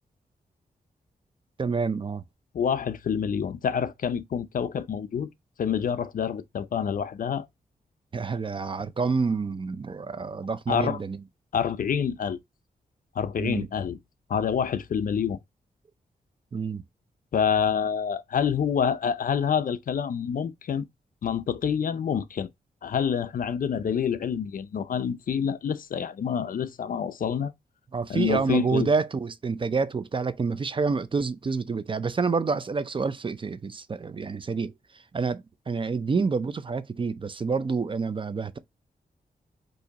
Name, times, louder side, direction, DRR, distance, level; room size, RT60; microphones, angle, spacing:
voice 1, 1.6-2.2 8.1-11.2 13.4-13.7 16.5-16.8 27.9-34.7 35.1-38.6, right 4 dB, 30° right, 0.5 m, -28 dB
voice 2, 2.5-5.3 5.6-7.5 10.7-11.0 11.5-12.4 13.2-14.0 14.3-15.4 17.3-20.9 21.2-22.5 22.8-27.5 28.1-28.9, left 7 dB, 60° left, 0.5 m, -27 dB
4.8 x 2.7 x 3.9 m
wide cardioid pair, 110°, 16 cm